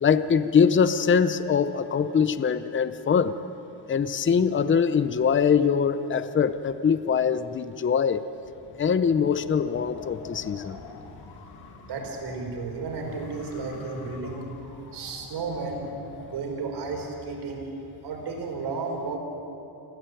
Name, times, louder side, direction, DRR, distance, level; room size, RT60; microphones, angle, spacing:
voice 1, 0.0-3.3 3.9-8.3 8.8-10.8, left 6 dB, 30° left, 13 dB, 0.8 m, -23 dB
Wind, 8.4-17.1, left 5 dB, 60° left, 2.3 m, -46 dB
voice 2, 11.8-14.5 14.9-15.9 16.3-17.7 18.0-19.2, right 4 dB, 70° right, 2 dB, 5.1 m, -33 dB
26.0 x 16.5 x 9.2 m, 2.9 s
cardioid pair, 125°, 41 cm